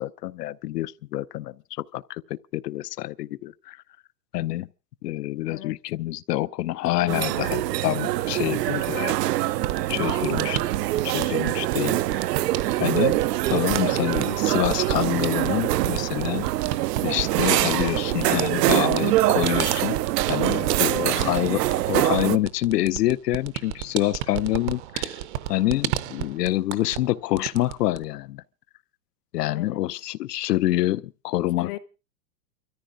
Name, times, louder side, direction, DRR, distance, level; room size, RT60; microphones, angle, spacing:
voice 1, 0.0-2.2 2.5-3.8 4.3-4.7 5.0-9.1 9.9-10.6 11.0-12.3 12.8-13.2 13.5-16.5 17.0-20.0 20.3-25.2 25.5-28.4 29.3-31.8, left 15 dB, 85° left, 0.8 m, -27 dB
voice 2, 5.5-5.8 7.0-7.8 8.2-9.5 9.9-10.7 20.5-21.3 29.5-29.8 31.6-31.8, left 16 dB, 35° left, 0.7 m, -40 dB
sound 1, 7.1-22.4, right 15 dB, 85° right, 0.7 m, -24 dB
sound 2, 9.6-27.1 27.4-28.0, right 13 dB, 45° right, 0.7 m, -33 dB
30.0 x 14.0 x 2.5 m
supercardioid pair, 160°, 47 cm